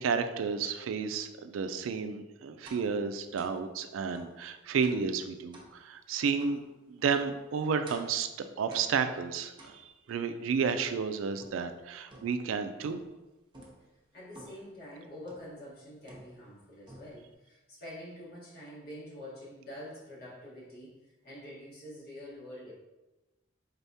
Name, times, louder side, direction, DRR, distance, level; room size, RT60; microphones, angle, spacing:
voice 1, 0.0-6.6 6.9-13.0, right 5 dB, 75° right, 9 dB, 0.3 m, -32 dB
sound 1, 2.6-2.9 3.4-3.6 4.1-4.4 4.8-5.1 5.5-5.7 6.4-6.6 7.1-7.4 7.9-8.2 8.7-9.1 9.6-10.1 10.6-11.7 12.1-12.5 12.8-13.2 13.5-13.8 14.3-14.7 15.3-15.6 16.1-16.6 16.9-17.3, right 1 dB, 25° right, 0.7 m, -52 dB
voice 2, 14.1-21.0 21.2-22.7, left 1 dB, 50° left, -5 dB, 1.4 m, -46 dB
4.0 x 3.4 x 2.7 m, 1.1 s
head